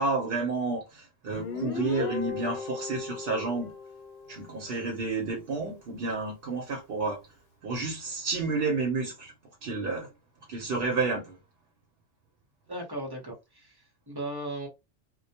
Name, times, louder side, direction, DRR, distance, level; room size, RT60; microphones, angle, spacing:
voice 1, 0.0-3.7 4.3-7.2 7.6-9.3 9.6-10.1 10.5-11.4, right 3 dB, 60° right, 0.8 m, -30 dB
Guitar, 1.3-4.8, left 4 dB, 60° left, 0.8 m, -36 dB
voice 2, 12.7-14.7, right 1 dB, 25° right, 0.6 m, -37 dB
2.2 x 2.1 x 2.7 m
omnidirectional pair, 1.2 m